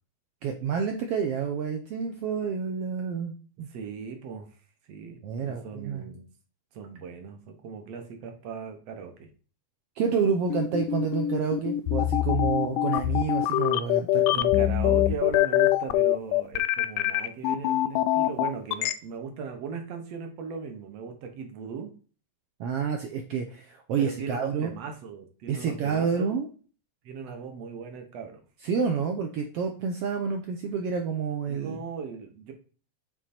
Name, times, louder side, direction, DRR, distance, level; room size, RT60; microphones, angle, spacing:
voice 1, 0.4-3.7 5.2-6.1 10.0-14.5 22.6-24.7 25.5-26.5 28.6-31.8, right 6 dB, 85° right, 4 dB, 1.3 m, -29 dB
voice 2, 3.7-4.5 4.8-6.2 6.7-9.3 14.3-21.9 24.0-26.4 27.1-28.4 31.5-32.5, right 6 dB, 65° right, 5 dB, 1.8 m, -38 dB
sound 1, 10.5-18.9, left 13 dB, 85° left, 2.1 m, -24 dB
7.4 x 3.8 x 4.2 m, 0.38 s
omnidirectional pair, 3.6 m